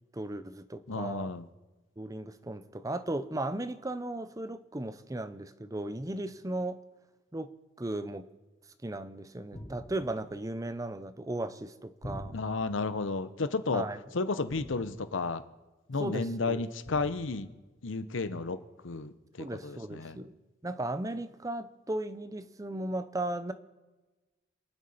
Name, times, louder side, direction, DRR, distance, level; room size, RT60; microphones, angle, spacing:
voice 1, 0.1-1.3 2.0-6.8 7.3-8.2 8.8-12.4 13.7-14.0 16.0-16.6 19.4-20.3 20.6-23.5, right 1 dB, 20° right, 12 dB, 0.6 m, -36 dB
voice 2, 0.9-1.4 12.3-13.8 14.1-15.4 15.9-17.5 17.8-18.6 18.8-20.2, left 3 dB, 90° left, 13 dB, 0.8 m, -32 dB
sound 1, 9.5-10.3 12.0-12.8 14.5-15.2 16.8-17.5, equal, 50° left, 4.6 m, -46 dB
28.0 x 9.5 x 4.2 m, 1.2 s
head